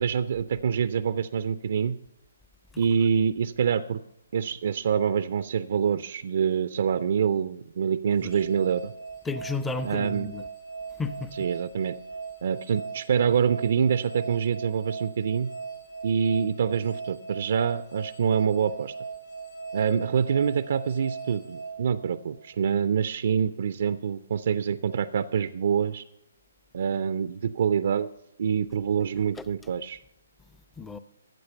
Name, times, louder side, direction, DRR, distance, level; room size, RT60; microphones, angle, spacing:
voice 1, 0.0-2.0 2.8-4.0 4.3-8.9 9.8-10.3 11.4-12.0 12.4-15.5 16.0-18.9 19.7-26.0 26.7-28.1 28.4-30.0, right 7 dB, 55° right, 0.4 m, -26 dB
sound 1, 8.1-22.5, right 5 dB, 80° left, 3.1 m, -39 dB
voice 2, 9.2-10.4 11.0-11.3 29.4-29.5 30.8-31.0, left 4 dB, 10° left, 0.5 m, -33 dB
14.5 x 7.7 x 5.6 m
figure-of-eight pair, 135°, 0 cm